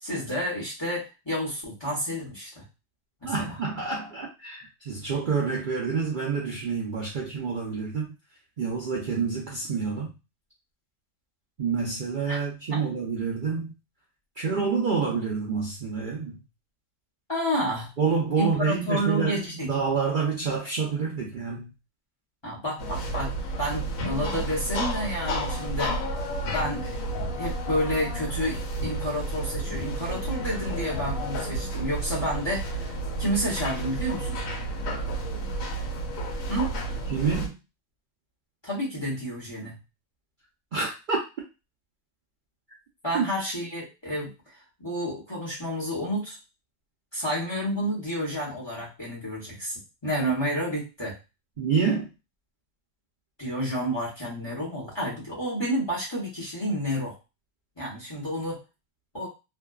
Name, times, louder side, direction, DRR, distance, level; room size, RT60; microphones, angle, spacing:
voice 1, 0.0-2.6 3.2-3.5 12.3-12.4 12.7-12.9 17.3-17.9 18.4-19.7 22.4-23.3 23.6-26.1 26.5-26.9 27.4-32.9 33.2-34.4 36.5-36.8 38.6-39.8 43.0-46.4 47.1-51.2 53.4-57.2 57.8-58.6 59.1-59.3, equal, 25° left, -4 dB, 0.6 m, -30 dB
voice 2, 3.2-8.1 8.6-10.1 11.6-13.7 14.4-16.3 18.0-21.7 37.1-37.5 40.7-41.2 43.1-43.2 51.6-52.1, right 5 dB, 85° right, -3 dB, 0.4 m, -28 dB
sound 1, 22.8-37.5, right 1 dB, 65° left, 1.0 m, -31 dB
2.6 x 2.2 x 2.2 m, 0.27 s
omnidirectional pair, 1.6 m